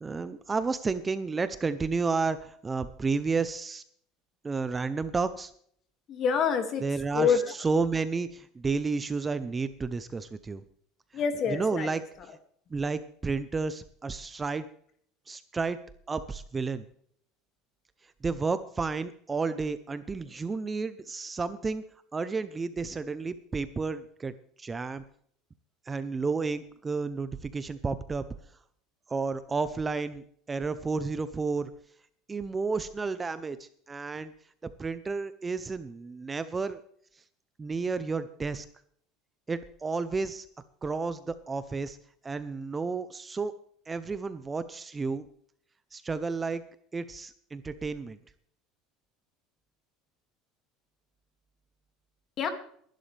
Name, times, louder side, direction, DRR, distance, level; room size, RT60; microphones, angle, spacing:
voice 1, 0.0-3.8 4.4-5.5 6.8-10.6 11.5-12.0 12.7-14.6 15.3-15.8 16.1-16.8 18.2-21.8 22.1-24.3 24.6-25.0 25.9-28.3 29.1-31.7 32.3-34.3 34.6-36.8 37.6-38.7 39.5-40.5 40.8-42.0 42.2-43.5 43.9-45.2 45.9-46.6 46.9-48.2, right 4 dB, 15° right, 12 dB, 0.7 m, -31 dB
voice 2, 6.1-6.8 7.1-7.5 11.1-11.9 52.4-52.5, left 6 dB, 40° left, 6 dB, 2.3 m, -26 dB
20.0 x 11.5 x 3.4 m, 0.62 s
supercardioid pair, 135°, 0 cm